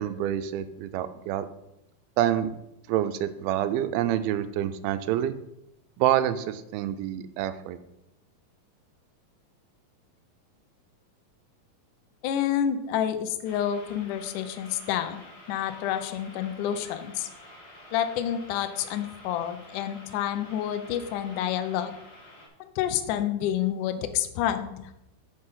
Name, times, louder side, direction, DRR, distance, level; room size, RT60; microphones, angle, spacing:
voice 1, 0.0-1.4 2.2-2.5 2.9-5.3 6.0-7.8, right 11 dB, 90° right, 10 dB, 2.5 m, -27 dB
voice 2, 12.2-15.2 15.5-17.3 17.9-21.9 22.6-24.9, left 10 dB, 75° left, 9 dB, 2.0 m, -29 dB
sound 1, 13.4-22.5, left 1 dB, 40° left, 2.7 m, -49 dB
8.9 x 5.5 x 5.6 m, 0.86 s
omnidirectional pair, 4.3 m